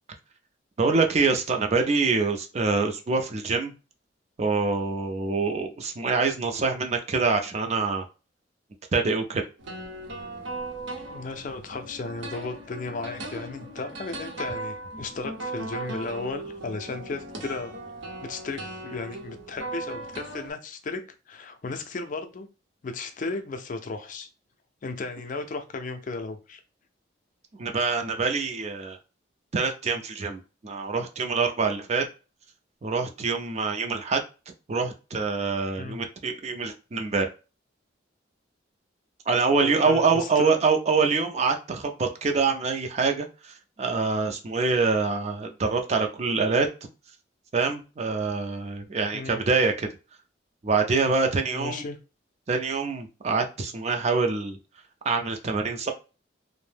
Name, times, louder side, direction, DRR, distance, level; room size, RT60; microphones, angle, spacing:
voice 1, 0.8-3.7 4.4-8.1 8.9-9.4 27.6-29.0 29.5-32.0 32.8-34.2 34.7-37.3 39.3-46.7 47.5-49.9 50.6-51.8 52.5-54.6 55.0-55.9, right 4 dB, 35° right, 4 dB, 0.4 m, -25 dB
sound 1, 9.6-20.5, right 2 dB, 85° right, 0.8 m, -38 dB
voice 2, 11.1-17.7 18.2-21.0 21.3-22.5 22.8-24.3 24.8-26.6 35.8-36.0 39.6-40.6 49.1-49.4 51.5-52.0, left 3 dB, 45° left, 7 dB, 0.4 m, -35 dB
2.6 x 2.0 x 3.2 m, 0.32 s
head